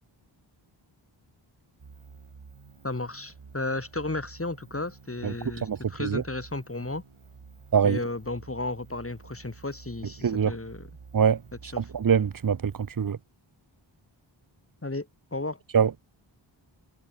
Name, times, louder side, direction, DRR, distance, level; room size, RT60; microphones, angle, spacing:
sound 1, 1.8-13.1, right 5 dB, 85° right, 5.3 m, -50 dB
voice 1, 2.8-7.0 7.8-10.9 11.7-11.9 14.8-15.6, left 2 dB, 30° left, 2.3 m, -34 dB
voice 2, 5.6-6.2 7.7-8.0 10.2-10.5 11.1-13.2 15.7-15.9, right 7 dB, 45° right, 0.7 m, -24 dB
wide cardioid pair, 70°, 48 cm